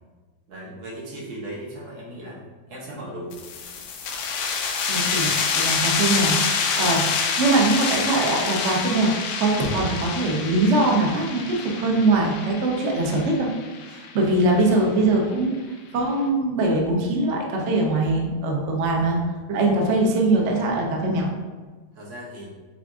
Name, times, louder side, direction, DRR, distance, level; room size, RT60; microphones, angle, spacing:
voice 1, 0.5-2.4 2.7-3.4 5.1-5.4 6.7-7.1 18.9-19.3 21.9-22.5, right 1 dB, 85° right, -5 dB, 2.0 m, -38 dB
sound 1, 3.3-14.6, left 5 dB, 70° left, 1.0 m, -27 dB
voice 2, 4.9-6.4 6.8-7.0 7.4-9.1 9.4-13.5 13.9-15.5 15.9-19.2 19.5-21.3, right 2 dB, 65° right, 0 dB, 0.7 m, -22 dB
7.2 x 2.5 x 2.3 m, 1.3 s
omnidirectional pair, 2.1 m